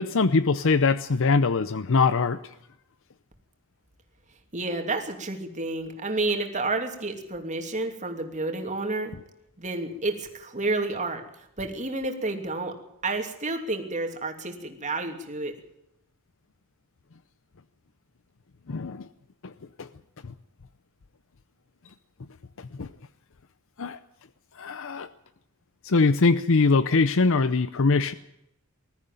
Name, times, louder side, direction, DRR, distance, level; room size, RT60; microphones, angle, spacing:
voice 1, 0.0-2.4 18.7-19.1 19.4-19.5 19.8-19.9 22.6-22.9 23.8-24.0 24.6-25.1 25.8-28.1, left 4 dB, 60° left, 14 dB, 0.7 m, -22 dB
voice 2, 4.5-9.1 9.6-11.2 11.6-12.7 13.0-15.5, right 2 dB, 35° right, 4 dB, 2.9 m, -30 dB
20.5 x 14.0 x 9.2 m, 0.80 s
head